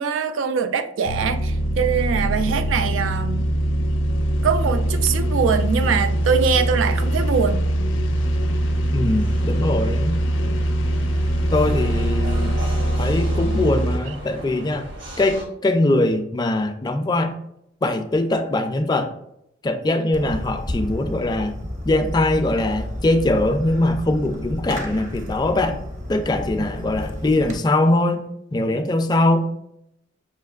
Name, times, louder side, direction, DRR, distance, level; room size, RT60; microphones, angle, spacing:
voice 1, 0.0-3.4 4.4-7.6, right 6 dB, 80° right, 9 dB, 0.4 m, -22 dB
sound 1, 1.0-14.0, right 1 dB, 80° left, 0.5 m, -22 dB
sound 2, 8.1-15.4, right 1 dB, 65° right, 1.1 m, -37 dB
voice 2, 8.9-10.2 11.5-12.6 13.0-14.9 15.2-17.3 17.8-19.1 19.6-21.6 21.8-25.8 26.1-29.5, left 2 dB, 20° left, 7 dB, 0.3 m, -22 dB
Fireworks, 20.1-27.6, equal, 40° right, 0.7 m, -31 dB
5.7 x 2.9 x 2.3 m, 0.78 s
head